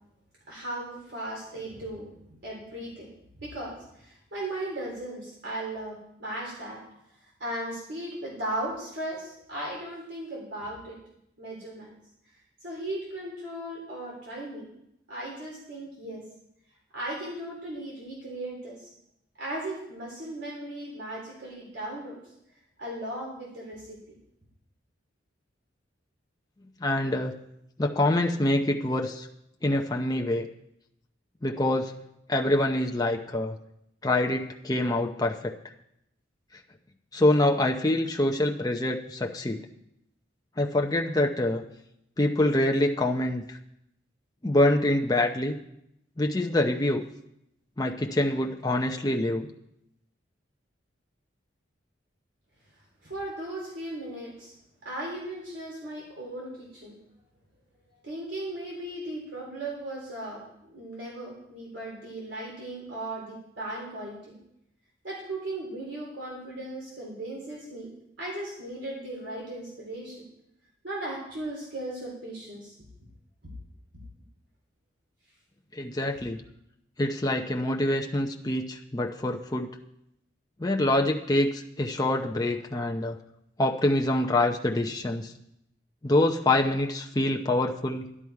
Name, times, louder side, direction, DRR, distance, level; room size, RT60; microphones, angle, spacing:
voice 1, 0.5-6.8 7.4-11.0 11.4-11.9 12.6-14.6 15.1-16.2 16.9-18.8 19.4-22.2 22.8-24.2 53.0-54.5 54.8-56.9 58.0-60.4 60.7-64.4 65.0-70.3 70.8-72.7, right 1 dB, 70° right, -3 dB, 3.4 m, -37 dB
voice 2, 26.8-27.3 27.8-29.3 29.6-30.5 31.4-31.9 32.3-33.5 34.0-35.5 37.1-39.6 40.6-41.6 42.2-43.6 44.4-45.6 46.2-47.0 47.8-49.5 75.7-76.4 77.0-79.7 80.6-83.2 83.6-85.3 86.0-88.1, left 1 dB, 20° left, 1 dB, 0.6 m, -25 dB
11.5 x 11.0 x 4.7 m, 0.80 s
head